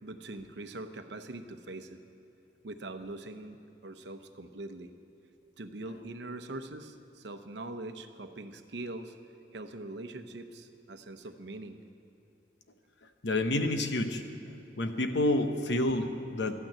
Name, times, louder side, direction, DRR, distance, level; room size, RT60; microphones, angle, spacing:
voice 1, 0.0-2.0 2.6-4.9 5.6-9.1 9.5-11.8, right 2 dB, 65° right, 8 dB, 0.8 m, -42 dB
voice 2, 13.2-14.2 14.8-16.5, left 1 dB, 70° left, 7 dB, 1.0 m, -28 dB
13.0 x 9.2 x 8.7 m, 3.0 s
head